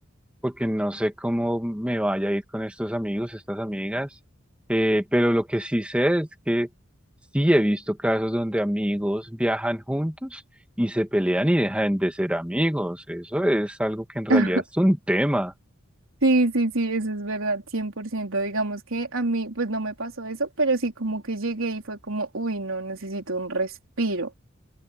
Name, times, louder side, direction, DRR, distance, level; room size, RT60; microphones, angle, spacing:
voice 1, 0.4-4.1 4.7-6.7 7.3-10.4 10.8-15.5, equal, 5° right, 1.9 m, -24 dB
voice 2, 14.3-14.6 16.2-24.3, right 2 dB, 85° right, 3.6 m, -26 dB
head